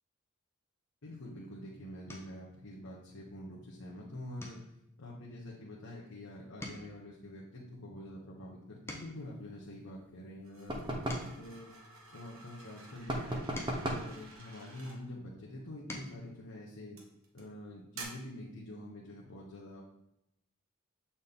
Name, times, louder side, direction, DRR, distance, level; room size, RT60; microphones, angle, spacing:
voice 1, 1.0-4.6 5.0-10.9 11.3-11.7 12.1-13.4 13.8-17.0 17.3-19.8, left 1 dB, 80° left, -4 dB, 1.0 m, -46 dB
sound 1, 2.1-2.5 3.0-3.3 3.6-3.8 4.4-6.2 6.5-9.4 10.0-12.5 13.1-15.0 15.5-16.3 17.6-17.7 18.0-18.2, left 1 dB, 10° left, 0.7 m, -50 dB
sound 2, 10.4-15.0 15.9-16.3 17.0-17.4 17.9-18.0, right 4 dB, 70° right, 1.2 m, -52 dB
sound 3, 10.7-11.4 13.1-14.1, right 1 dB, 20° right, 0.7 m, -35 dB
7.2 x 4.2 x 3.6 m, 0.83 s
head